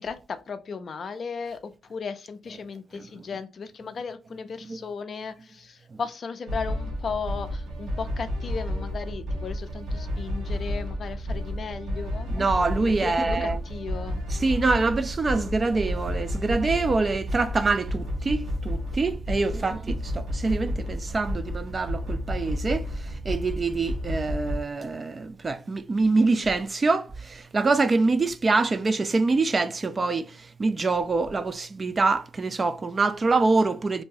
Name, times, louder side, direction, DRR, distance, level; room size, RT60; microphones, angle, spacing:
voice 1, 0.0-12.3 13.0-14.2 19.4-19.8, left 5 dB, 50° left, 0.4 m, -36 dB
sound 1, 6.5-24.6, equal, 80° right, 1.0 m, -31 dB
voice 2, 12.3-13.6 14.3-34.0, right 3 dB, 30° right, 0.3 m, -25 dB
2.7 x 2.2 x 3.1 m
cardioid pair, 90°, 0 cm